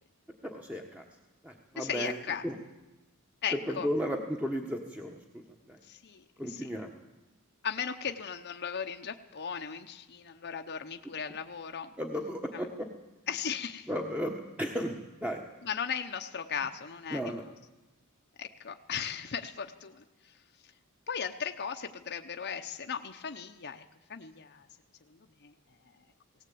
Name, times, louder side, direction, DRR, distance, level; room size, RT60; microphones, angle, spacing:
voice 1, 0.4-1.0 1.4-2.2 2.4-2.6 3.5-5.4 5.7-5.8 6.4-7.0 12.0-12.9 13.9-15.4 17.1-17.4, equal, 5° right, 2 dB, 1.3 m, -34 dB
voice 2, 1.8-2.4 3.4-3.9 5.9-6.7 7.6-11.9 13.3-13.9 15.6-17.2 18.4-20.0 21.1-23.8 24.1-24.7 25.1-25.5, left 7 dB, 50° left, 5 dB, 0.9 m, -37 dB
18.5 x 18.0 x 8.6 m, 1.1 s
head